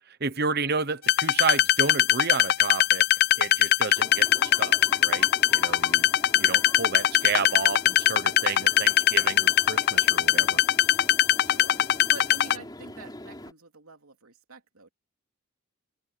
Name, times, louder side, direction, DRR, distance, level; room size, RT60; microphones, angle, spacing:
voice 1, 0.2-3.0 3.4-6.1 6.3-10.6, right 4 dB, 45° right, 0.9 m, -31 dB
sound 1, 1.1-12.6, left 12 dB, 45° left, 0.4 m, -21 dB
sound 2, 3.9-13.5, left 1 dB, 20° left, 4.0 m, -43 dB
voice 2, 11.4-14.9, right 3 dB, 85° right, 3.0 m, -46 dB
head